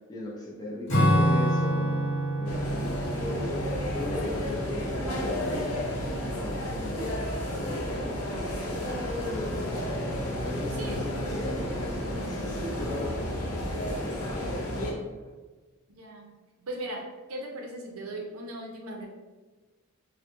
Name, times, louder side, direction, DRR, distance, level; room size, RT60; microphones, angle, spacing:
voice 1, 0.1-2.0 2.4-3.7 3.9-7.1 7.5-8.2 8.6-9.9 10.1-13.2 13.7-15.3, left 1 dB, 20° left, -5 dB, 0.5 m, -37 dB
Acoustic guitar / Strum, 0.9-5.7, equal, 60° left, 1.0 m, -27 dB
sound 1, 2.4-14.9, equal, 85° left, 0.7 m, -32 dB
voice 2, 7.7-8.0 10.8-11.2 16.0-16.3 16.6-19.1, right 1 dB, 70° right, 2 dB, 0.6 m, -38 dB
3.3 x 2.1 x 2.9 m, 1.3 s
head